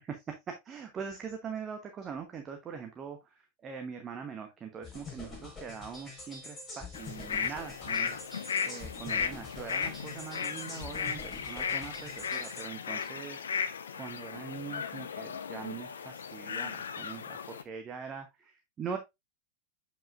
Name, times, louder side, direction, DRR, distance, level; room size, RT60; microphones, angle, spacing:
voice 1, 0.0-13.4 13.9-19.0, right 6 dB, 25° right, 5 dB, 1.0 m, -42 dB
sound 1, 4.8-12.6, left 3 dB, 20° left, 4.5 m, -46 dB
sound 2, 6.9-17.6, left 6 dB, 70° left, 0.6 m, -36 dB
7.3 x 5.6 x 2.5 m, 0.20 s
figure-of-eight pair, 90°, 0 cm